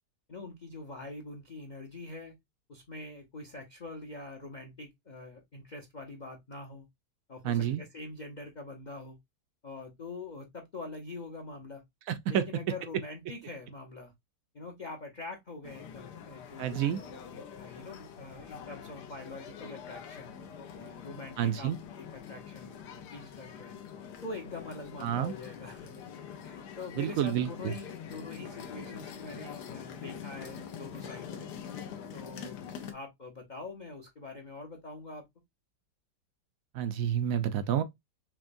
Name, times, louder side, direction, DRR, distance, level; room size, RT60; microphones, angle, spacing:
voice 1, 0.3-2.3 2.7-6.9 7.3-9.2 9.6-11.8 12.3-14.1 14.5-20.3 20.7-21.7 22.0-23.7 24.2-26.1 26.4-31.5 32.1-32.6 32.9-35.2, left 3 dB, 40° left, 0.6 m, -44 dB
voice 2, 7.4-7.8 12.1-12.5 16.6-17.0 21.4-21.8 25.0-25.3 27.0-27.7 36.7-37.8, right 10 dB, 70° right, 0.8 m, -29 dB
sound 1, 15.6-32.9, left 7 dB, 75° left, 1.3 m, -45 dB
6.0 x 2.2 x 2.5 m
omnidirectional pair, 1.8 m